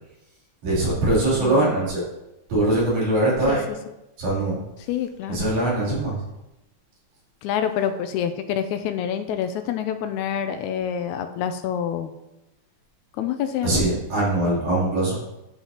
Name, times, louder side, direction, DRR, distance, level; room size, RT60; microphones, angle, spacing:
voice 1, 0.6-2.0 2.5-3.6 4.2-4.6 5.3-6.2 13.6-15.1, right 2 dB, 70° right, -7 dB, 4.4 m, -22 dB
voice 2, 1.4-1.7 3.5-3.6 4.9-5.5 7.4-12.1 13.2-13.8, left 9 dB, 80° left, 9 dB, 1.8 m, -27 dB
11.5 x 5.7 x 2.8 m, 0.92 s
omnidirectional pair, 3.5 m